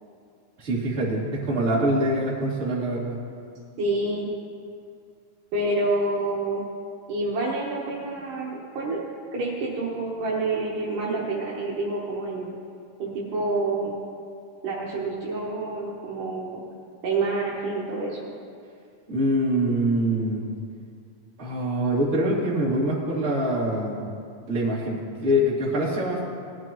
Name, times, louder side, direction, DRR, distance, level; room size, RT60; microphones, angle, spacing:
voice 1, 0.6-3.1 19.1-20.4 21.4-24.1 24.5-26.2, equal, 20° right, -8 dB, 2.6 m, -24 dB
voice 2, 3.8-4.3 5.5-6.6 7.1-9.0 9.3-12.6 13.0-13.9 14.6-16.6 17.0-18.3, right 2 dB, 65° right, -5 dB, 2.7 m, -28 dB
19.5 x 12.0 x 3.1 m, 2.3 s
omnidirectional pair, 4.5 m